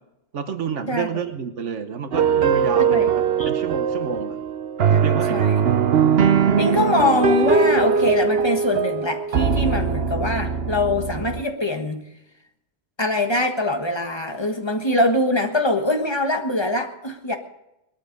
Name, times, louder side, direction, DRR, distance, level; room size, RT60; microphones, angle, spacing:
voice 1, 0.3-4.4 4.9-5.6, right 6 dB, 90° right, 8 dB, 1.4 m, -30 dB
voice 2, 0.9-1.2 2.9-3.1 3.4-3.5 4.9-5.6 6.6-12.1 13.0-17.4, left 2 dB, 25° left, 4 dB, 1.5 m, -23 dB
sound 1, 2.1-11.4, right 6 dB, 60° right, 1.0 m, -20 dB
20.0 x 13.5 x 5.3 m, 0.88 s
omnidirectional pair, 1.2 m